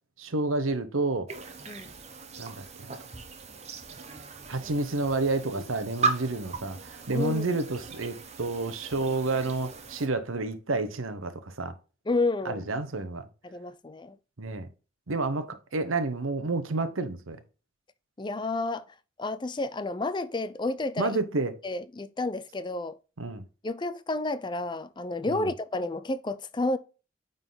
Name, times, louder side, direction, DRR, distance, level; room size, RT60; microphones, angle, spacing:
voice 1, 0.2-1.3 2.4-2.9 4.5-11.7 12.4-13.2 14.4-14.7 15.1-17.4 21.0-21.5 23.2-23.4 25.3-25.5, right 3 dB, 90° right, 1.0 m, -30 dB
sound 1, 1.3-10.1, right 4 dB, 35° right, 1.0 m, -37 dB
voice 2, 7.1-7.5 12.1-12.6 13.4-14.2 18.2-18.8 19.2-21.2 21.6-23.0 23.6-26.8, left 2 dB, 25° left, 0.5 m, -30 dB
9.2 x 4.0 x 3.8 m
head